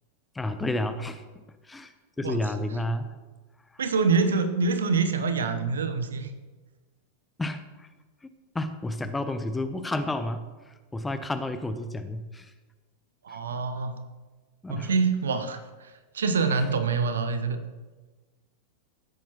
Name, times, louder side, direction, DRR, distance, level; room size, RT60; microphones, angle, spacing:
voice 1, 0.4-1.2 1.7-3.1 7.4-7.9 8.5-10.4 10.9-12.5 13.3-13.4 14.6-14.9, left 1 dB, 10° left, 11 dB, 0.7 m, -31 dB
voice 2, 3.8-6.3 13.2-13.9 14.7-17.6, right 4 dB, 65° right, 9 dB, 0.9 m, -26 dB
16.0 x 8.8 x 2.9 m, 1.3 s
figure-of-eight pair, 90°, 0 cm